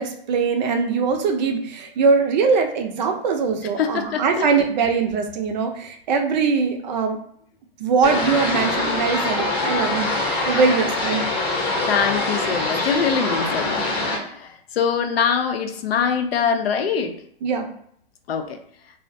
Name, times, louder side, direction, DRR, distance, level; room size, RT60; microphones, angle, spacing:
voice 1, 0.0-7.2 7.8-11.3 17.4-17.7, right 5 dB, 50° right, 4 dB, 0.5 m, -22 dB
voice 2, 3.8-4.5 11.9-14.5 14.7-17.1 18.3-18.6, left 6 dB, 85° left, 6 dB, 0.5 m, -23 dB
sound 1, 8.0-14.2, left 2 dB, 30° left, 0.7 m, -24 dB
2.3 x 2.0 x 2.6 m, 0.64 s
hypercardioid pair, 135°, 29 cm